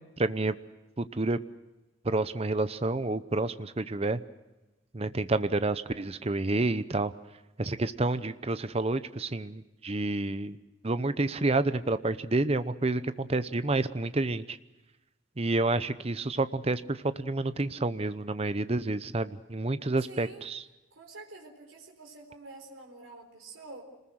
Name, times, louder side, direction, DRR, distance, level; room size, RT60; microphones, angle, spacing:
voice 1, 0.2-0.5 1.0-1.4 2.0-4.2 4.9-7.1 7.6-10.6 10.8-14.6 15.4-20.6, right 2 dB, 30° right, 13 dB, 0.7 m, -29 dB
voice 2, 20.1-20.5 20.9-23.8, right 2 dB, 85° right, 1 dB, 4.0 m, -47 dB
27.0 x 20.0 x 6.4 m, 1.1 s
head